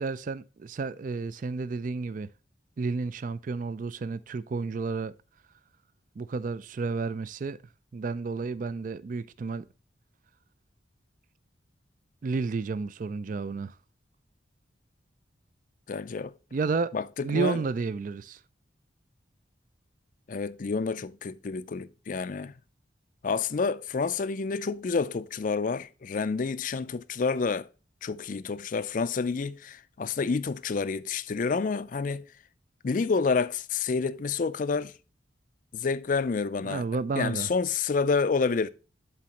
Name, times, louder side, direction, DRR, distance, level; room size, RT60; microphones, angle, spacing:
voice 1, 0.0-2.3 2.8-5.1 6.2-7.6 7.9-9.7 12.2-13.7 16.5-16.9 17.2-18.4 36.6-37.5, right 4 dB, 45° right, 0.3 m, -31 dB
voice 2, 15.9-16.3 16.9-17.6 20.3-22.5 23.2-27.7 28.0-32.3 32.8-34.9 35.7-36.8 37.2-38.7, left 4 dB, 45° left, 0.4 m, -29 dB
11.0 x 4.2 x 2.9 m
head